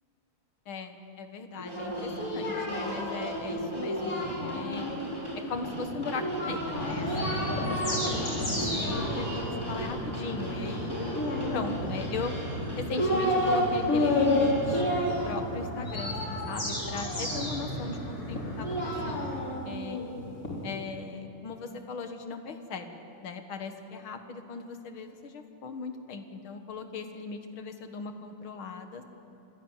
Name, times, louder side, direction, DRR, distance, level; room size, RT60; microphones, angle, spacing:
voice 1, 0.7-4.2 4.5-4.9 5.5-11.0 11.5-12.3 12.8-19.3 19.6-20.0 20.6-29.0, left 4 dB, 75° left, 6 dB, 2.3 m, -38 dB
sound 1, 1.6-14.9, equal, 10° right, 5.7 m, -37 dB
Singing, 1.7-5.0 6.1-8.2 8.5-9.7 11.1-12.1 12.6-13.6 13.9-17.5 18.3-20.6, left 1 dB, 40° left, 4.2 m, -31 dB
sound 2, 6.8-19.4, equal, 60° left, 8.3 m, -35 dB
26.5 x 16.5 x 9.0 m, 3.0 s
omnidirectional pair, 2.3 m